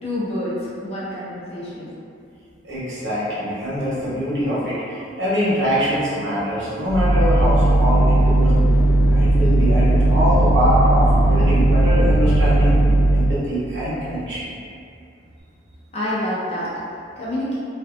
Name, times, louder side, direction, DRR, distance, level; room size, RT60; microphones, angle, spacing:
voice 1, 0.0-1.9 15.9-17.6, left 1 dB, 35° left, -9 dB, 0.7 m, -27 dB
voice 2, 2.6-8.6 9.0-12.8 13.1-14.5, equal, 80° right, -9 dB, 0.9 m, -23 dB
sound 1, 6.9-13.4, right 1 dB, 85° left, 0.3 m, -16 dB
2.5 x 2.3 x 2.4 m, 2.5 s
head